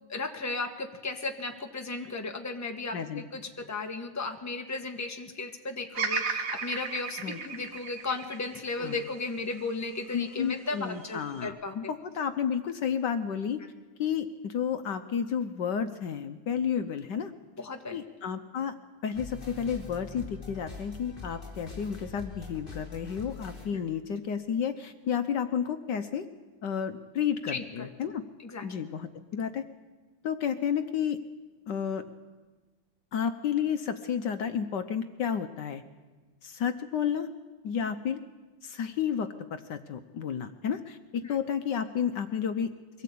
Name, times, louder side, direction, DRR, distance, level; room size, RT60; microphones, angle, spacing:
voice 1, 0.1-11.8 17.6-18.0 27.5-28.1 28.4-28.7 37.8-37.9 41.2-41.4, left 3 dB, 10° left, 4 dB, 1.3 m, -35 dB
Bird vocalization bird call bird song, 5.9-10.2 10.7-11.5, right 5 dB, 50° right, 1.6 m, -35 dB
voice 2, 10.1-13.6 14.0-17.3 17.9-18.7 19.0-26.3 26.6-28.2 28.6-29.6 30.2-31.2 31.7-32.0 33.1-35.8 36.4-37.3 37.6-38.2 38.6-42.7, left 7 dB, 65° left, 9 dB, 1.4 m, -31 dB
sound 1, 19.1-23.7, left 4 dB, 25° left, 3.9 m, -43 dB
23.5 x 17.0 x 8.5 m, 1.3 s
omnidirectional pair, 2.1 m